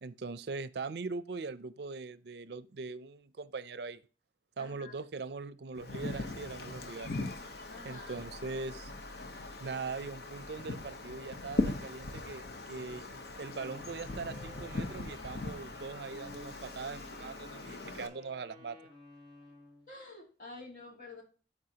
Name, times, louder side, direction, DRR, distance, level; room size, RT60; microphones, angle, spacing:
voice 1, 0.0-4.0 4.6-7.2 7.8-8.9 9.6-18.8, right 4 dB, 70° right, 0.5 m, -41 dB
voice 2, 4.6-4.9 7.7-8.3 19.9-21.2, left 3 dB, 50° left, 2.7 m, -49 dB
Wind, 5.7-18.1, left 2 dB, 65° left, 0.9 m, -40 dB
Wind instrument woodwind instrument, 13.4-19.9, left 2 dB, 30° left, 2.4 m, -54 dB
12.5 x 4.8 x 2.8 m
head